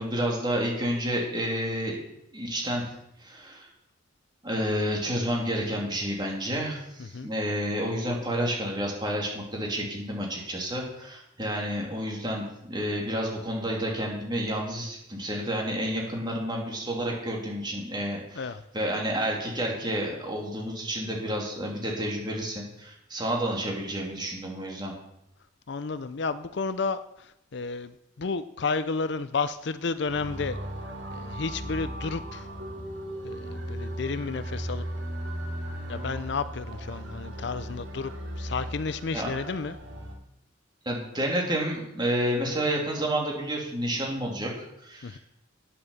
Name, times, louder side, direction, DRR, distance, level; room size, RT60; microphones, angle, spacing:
voice 1, 0.0-2.0 2.3-2.9 3.2-3.7 4.4-24.9 39.1-39.3 40.8-45.2, equal, 20° right, -1 dB, 2.7 m, -30 dB
voice 2, 7.0-7.3 18.3-18.6 25.7-30.6 31.1-32.5 33.2-34.8 35.9-38.1 38.4-39.8 45.0-45.2, left 4 dB, 55° left, 13 dB, 0.5 m, -32 dB
sound 1, 30.1-40.1, equal, 70° right, 2.4 m, -36 dB
9.9 x 8.1 x 7.1 m, 0.83 s
head